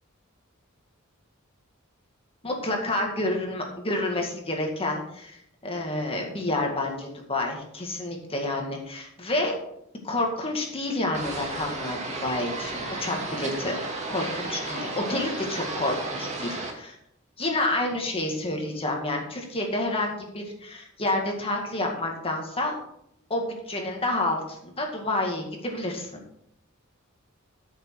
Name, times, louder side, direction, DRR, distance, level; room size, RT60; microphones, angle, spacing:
voice 1, 2.4-9.6 10.0-13.8 14.1-17.0 17.4-22.8 23.3-26.1, left 1 dB, 25° left, 1 dB, 2.0 m, -29 dB
sound 1, 11.1-16.7, right 2 dB, 35° right, 2.1 m, -33 dB
13.5 x 6.5 x 4.8 m, 0.74 s
head